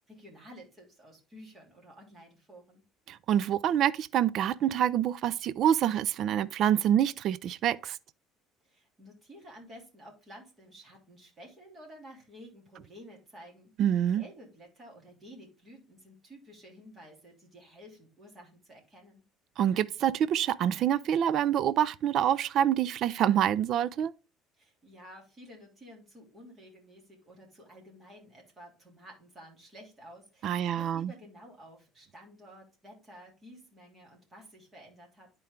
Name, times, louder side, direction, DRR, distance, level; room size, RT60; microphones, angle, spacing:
voice 1, 0.1-2.8 8.6-19.2 24.6-35.3, equal, 20° right, 3.0 m, -52 dB
voice 2, 3.1-8.0 13.8-14.2 19.6-24.1 30.4-31.1, right 10 dB, 45° right, 0.4 m, -26 dB
10.5 x 4.5 x 3.6 m
cardioid pair, 170°, 0 cm